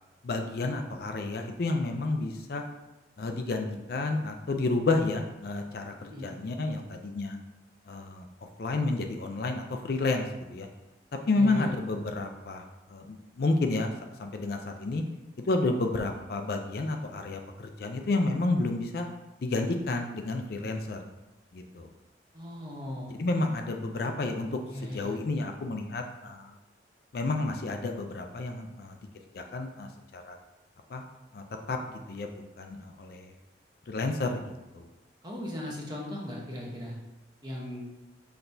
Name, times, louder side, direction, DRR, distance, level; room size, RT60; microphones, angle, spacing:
voice 1, 0.2-2.7 3.2-7.4 7.9-8.3 8.6-10.7 11.3-13.9 14.2-15.0 15.5-19.1 19.4-21.0 21.5-21.9 23.2-26.5 27.1-28.9 29.3-30.4 30.9-31.0 31.3-31.8 32.1-33.3 33.9-34.9, left 2 dB, 55° left, 4 dB, 0.4 m, -30 dB
voice 2, 6.0-6.3 11.4-11.7 22.3-23.2 24.7-25.1 35.2-36.9 37.4-37.9, left 1 dB, 20° right, -3 dB, 0.8 m, -37 dB
5.9 x 3.3 x 2.6 m, 1.0 s
head